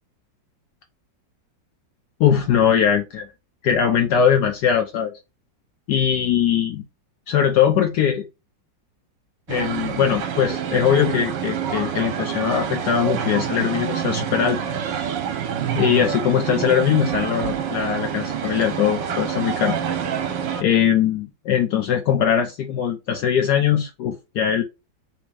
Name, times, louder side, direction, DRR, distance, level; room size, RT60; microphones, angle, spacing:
voice 1, 2.2-3.3 3.6-5.1 5.9-6.8 7.3-8.3 9.5-14.6 15.7-19.7 20.6-24.6, left 8 dB, 70° left, 4 dB, 1.1 m, -20 dB
sound 1, 9.5-20.6, right 8 dB, 75° right, 1.4 m, -27 dB
3.5 x 3.1 x 4.8 m, 0.26 s
omnidirectional pair, 2.0 m